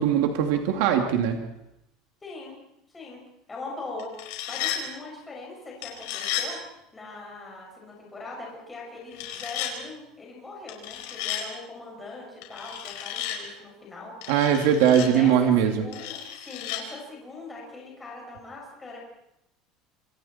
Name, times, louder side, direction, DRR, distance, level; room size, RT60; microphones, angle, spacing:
voice 1, 0.0-1.4 14.3-15.7, right 9 dB, 70° right, 4 dB, 2.7 m, -21 dB
voice 2, 2.2-2.6 2.9-3.2 3.5-6.6 6.9-14.4 14.9-19.0, left 3 dB, 10° left, -2 dB, 6.4 m, -41 dB
sound 1, 4.0-4.8 5.8-6.5 9.1-9.7 10.7-11.4 12.4-13.4 14.2-15.1 15.9-16.8, left 11 dB, 70° left, 5.2 m, -33 dB
28.5 x 26.5 x 4.5 m, 0.81 s
cardioid pair, 180°, 0 cm